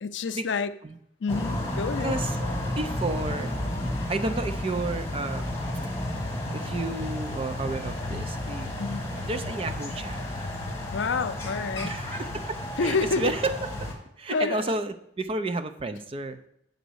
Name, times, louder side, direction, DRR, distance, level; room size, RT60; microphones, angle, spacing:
voice 1, 0.0-0.7 1.2-2.1 8.8-9.1 10.9-11.9 12.8-13.3 14.3-14.7, left 4 dB, 75° left, 12 dB, 0.5 m, -28 dB
sound 1, 1.3-13.9, left 1 dB, 15° left, 1.5 m, -32 dB
voice 2, 2.0-2.4 2.7-3.6 4.1-5.5 5.8-5.9 6.5-8.8 9.2-10.2 11.8-13.9 14.2-16.4, right 2 dB, 30° right, 9 dB, 0.5 m, -31 dB
7.7 x 4.1 x 6.3 m, 0.75 s
head